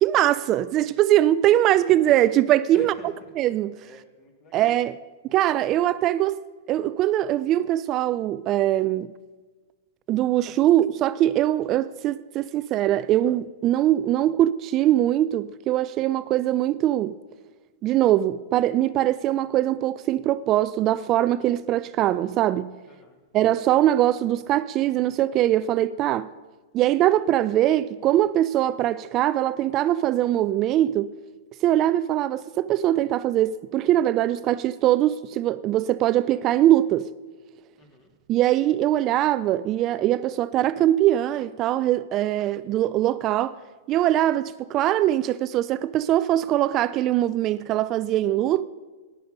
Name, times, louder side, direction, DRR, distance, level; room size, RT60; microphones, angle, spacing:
voice 1, 0.0-3.7 4.5-5.0 5.3-6.4 6.7-9.1 10.1-17.1 17.8-22.7 23.3-26.3 26.7-31.1 31.6-37.1 38.3-43.6 43.9-48.6, right 13 dB, 35° right, 0.3 m, -22 dB
voice 2, 2.7-3.3 3.8-4.7 22.9-23.2 37.8-38.1, left 3 dB, 35° left, 2.5 m, -49 dB
13.5 x 9.6 x 5.2 m
hypercardioid pair, 105°, 0 cm